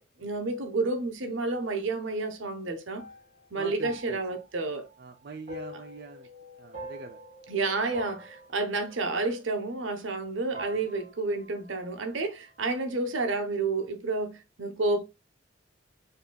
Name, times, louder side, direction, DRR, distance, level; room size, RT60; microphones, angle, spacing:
voice 1, 0.0-3.1 3.5-4.9 7.5-15.0, right 3 dB, 80° right, 0.9 m, -30 dB
sound 1, 1.3-10.2 10.5-12.6, equal, 40° right, 1.6 m, -47 dB
voice 2, 3.6-4.2 5.0-6.3 6.6-7.2 10.8-10.9, right 4 dB, 55° right, 0.5 m, -43 dB
6.5 x 2.7 x 2.2 m
head